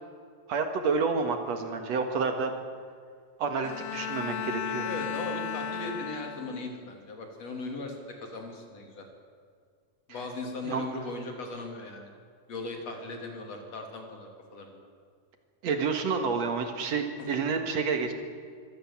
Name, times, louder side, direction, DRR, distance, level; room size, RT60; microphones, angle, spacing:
voice 1, 0.5-2.5 3.4-4.9 10.7-10.8 15.6-18.1, right 5 dB, 65° right, 6 dB, 2.7 m, -29 dB
Bowed string instrument, 3.6-6.8, left 7 dB, 85° left, 2.4 m, -35 dB
voice 2, 4.8-9.1 10.1-12.1 12.5-14.9 17.2-17.3, left 2 dB, 55° left, 3 dB, 3.9 m, -38 dB
24.0 x 17.0 x 7.3 m, 2.1 s
omnidirectional pair, 3.5 m